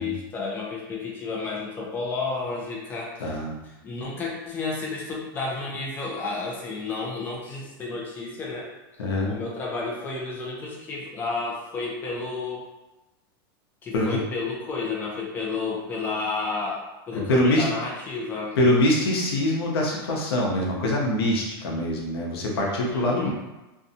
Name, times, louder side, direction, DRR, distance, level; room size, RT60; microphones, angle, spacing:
voice 1, 0.0-3.4 3.8-8.7 9.3-12.6 13.8-18.5 22.9-23.3, left 4 dB, 15° left, -3 dB, 0.4 m, -31 dB
voice 2, 3.2-3.5 9.0-9.3 13.9-14.2 17.1-17.7 18.6-23.3, left 1 dB, 85° left, -2 dB, 0.8 m, -24 dB
2.6 x 2.2 x 2.6 m, 1.0 s
supercardioid pair, 150°, 13 cm